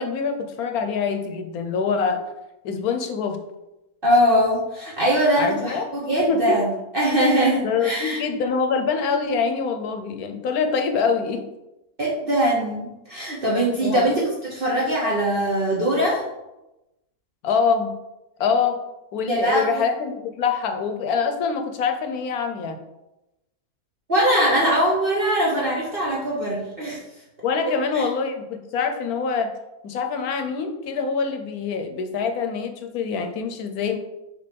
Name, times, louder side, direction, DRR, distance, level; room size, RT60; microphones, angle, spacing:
voice 1, 0.0-2.2 2.6-3.4 5.4-5.9 6.3-6.6 7.6-11.4 13.8-14.1 17.4-17.9 18.4-18.8 19.1-22.8 27.4-29.5 29.8-34.0, left 5 dB, 80° left, 6 dB, 1.2 m, -25 dB
voice 2, 4.0-8.2 12.0-16.2 19.3-19.8 24.1-27.0 27.7-28.1, equal, 40° right, -5 dB, 1.1 m, -22 dB
6.0 x 3.0 x 5.2 m, 0.95 s
omnidirectional pair, 1.6 m